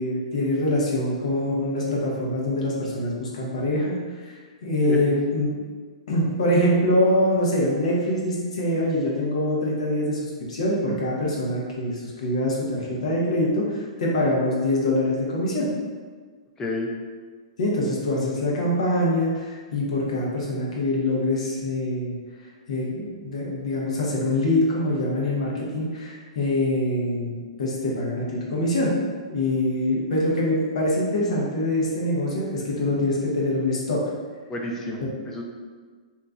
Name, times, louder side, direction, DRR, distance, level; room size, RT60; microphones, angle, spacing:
voice 1, 0.0-5.5 6.1-15.7 17.6-22.2 22.7-28.9 29.3-34.0, left 1 dB, 75° left, -4 dB, 1.0 m, -24 dB
voice 2, 16.6-16.9 34.5-35.4, left 1 dB, 15° left, 0 dB, 0.3 m, -30 dB
2.9 x 2.3 x 3.7 m, 1.5 s
hypercardioid pair, 155°, 4 cm